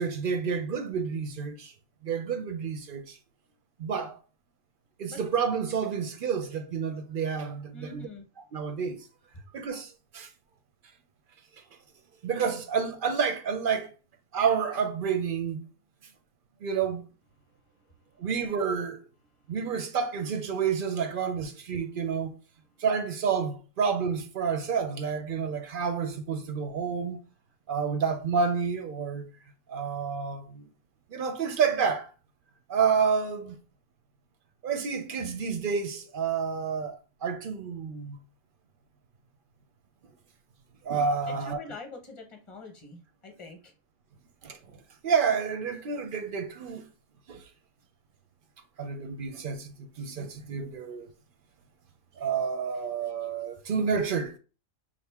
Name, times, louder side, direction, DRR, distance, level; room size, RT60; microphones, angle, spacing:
voice 1, 0.0-1.7 2.0-3.2 3.8-4.2 5.0-8.1 8.5-9.0 9.5-10.3 12.2-13.9 14.3-15.6 16.6-17.0 18.2-19.0 19.5-22.4 22.8-27.2 27.7-29.3 29.7-30.7 31.1-32.1 32.7-33.6 34.6-38.2 40.8-41.6 44.4-46.9 47.3-47.4 48.8-51.1 52.2-54.4, right 6 dB, 50° right, 0.7 m, -29 dB
voice 2, 7.7-8.3 41.3-43.7, left 2 dB, 25° left, 0.9 m, -44 dB
5.4 x 2.4 x 3.5 m
omnidirectional pair, 1.4 m